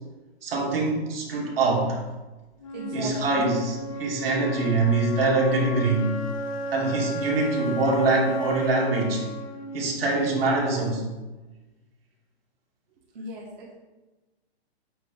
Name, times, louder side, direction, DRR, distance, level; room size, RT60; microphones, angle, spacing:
voice 1, 0.4-2.0 2.9-3.7 4.0-6.3 6.7-9.3 9.7-11.0, right 3 dB, 60° right, -3 dB, 2.9 m, -24 dB
Wind instrument woodwind instrument, 2.6-10.6, right 1 dB, 35° left, 0.9 m, -34 dB
voice 2, 2.7-3.4 13.1-13.7, equal, 40° right, -6 dB, 1.6 m, -36 dB
8.9 x 3.5 x 6.8 m, 1.1 s
hypercardioid pair, 165°, 33 cm